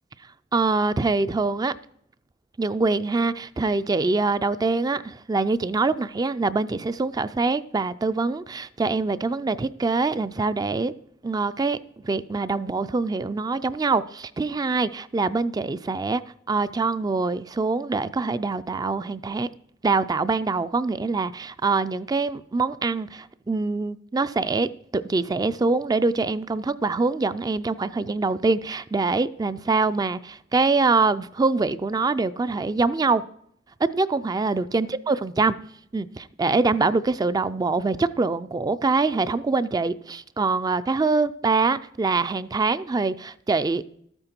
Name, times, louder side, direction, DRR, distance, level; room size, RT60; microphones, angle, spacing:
voice 1, 0.5-1.7 2.6-10.9 11.2-11.8 12.0-16.2 16.5-19.5 19.8-33.2 33.8-35.6 35.9-43.8, right 3 dB, 20° right, 0.3 m, -24 dB
12.5 x 8.9 x 4.4 m
head